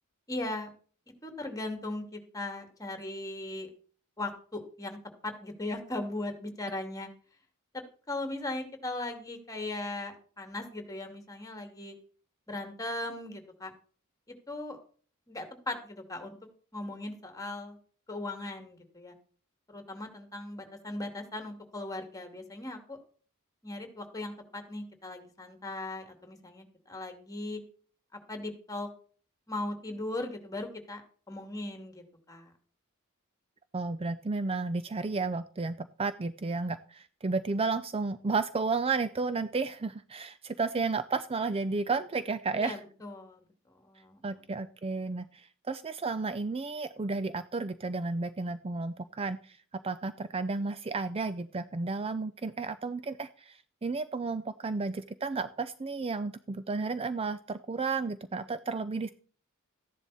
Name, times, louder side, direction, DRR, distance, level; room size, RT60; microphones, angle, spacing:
voice 1, 0.3-0.7 1.2-3.7 4.2-5.0 5.2-7.1 8.1-12.0 12.5-13.7 14.5-14.8 15.3-16.3 16.7-17.8 18.1-19.2 19.7-23.0 23.6-27.6 28.1-28.9 29.5-31.0 31.3-32.5 42.6-44.5, left 2 dB, 15° left, 5 dB, 2.4 m, -38 dB
voice 2, 33.7-42.7 44.2-49.6 49.8-59.1, right 4 dB, 25° right, 13 dB, 0.5 m, -32 dB
14.0 x 10.5 x 4.2 m, 0.43 s
head